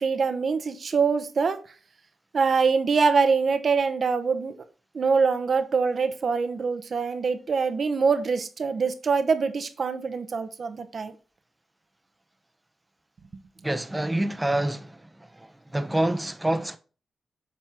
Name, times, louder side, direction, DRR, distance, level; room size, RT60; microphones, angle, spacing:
voice 1, 0.0-1.6 2.3-4.5 4.9-11.1, right 5 dB, 55° right, 0.9 m, -24 dB
voice 2, 13.6-15.0 15.7-16.8, right 1 dB, 10° right, 0.8 m, -26 dB
7.6 x 4.3 x 3.6 m
cardioid pair, 75°, 0 cm